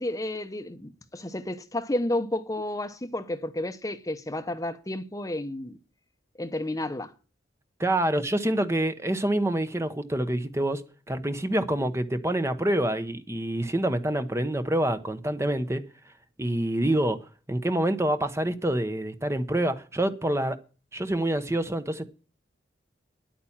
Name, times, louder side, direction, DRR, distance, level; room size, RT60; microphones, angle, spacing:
voice 1, 0.0-5.8 6.4-7.1, left 1 dB, 20° left, 0.8 m, -31 dB
voice 2, 7.8-10.8 11.1-15.8 16.4-17.2 17.5-20.6 20.9-22.1, right 1 dB, 15° right, 0.8 m, -26 dB
10.0 x 8.8 x 7.2 m
head